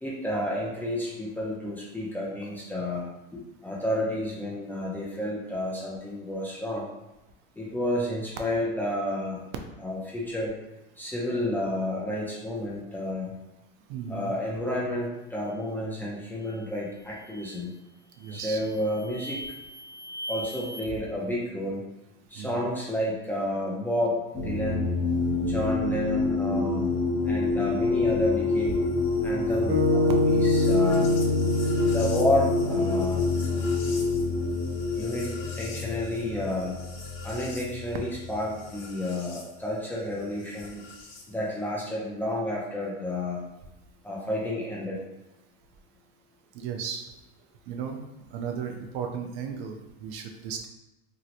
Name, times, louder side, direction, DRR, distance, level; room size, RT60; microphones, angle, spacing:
voice 1, 0.0-3.0 3.3-6.9 7.6-9.4 9.8-10.5 11.0-13.3 14.1-17.7 18.3-19.4 20.3-21.8 22.3-24.9 25.4-26.9 27.2-28.8 29.2-31.1 31.8-33.3 35.0-36.7 37.2-40.8 41.3-43.4 44.0-45.0, left 1 dB, 5° left, -5 dB, 0.4 m, -30 dB
voice 2, 13.9-14.3 18.2-18.6 22.4-22.7 25.4-25.8 46.5-47.1 47.7-48.0 48.3-50.7, right 7 dB, 60° right, 4 dB, 0.5 m, -35 dB
sound 1, 16.4-16.7 17.2-17.7 18.2-20.8, equal, 30° left, 0.8 m, -41 dB
sound 2, 24.3-39.4 40.6-41.2, left 3 dB, 70° left, 0.9 m, -27 dB
sound 3, 29.7-34.1, left 2 dB, 15° right, 0.9 m, -26 dB
2.9 x 2.8 x 2.5 m, 0.96 s
supercardioid pair, 140°, 30 cm